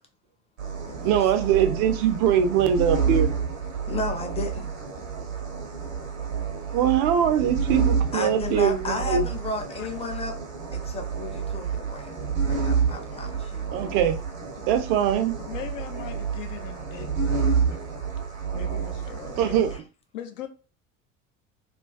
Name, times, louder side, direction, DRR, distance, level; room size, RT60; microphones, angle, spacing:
sound 1, 0.6-19.8, right 6 dB, 80° right, 0.8 m, -29 dB
voice 1, 1.0-3.3 6.7-9.3 13.7-14.2 14.7-15.3 19.4-19.7, right 9 dB, 50° right, 0.4 m, -22 dB
voice 2, 3.9-4.7 8.1-10.3 10.7-12.2 12.4-13.7, left 3 dB, 15° left, 0.6 m, -33 dB
voice 3, 15.4-18.1 18.5-19.6 20.1-20.5, left 11 dB, 70° left, 0.5 m, -40 dB
2.4 x 2.2 x 2.3 m
figure-of-eight pair, 65°, 39 cm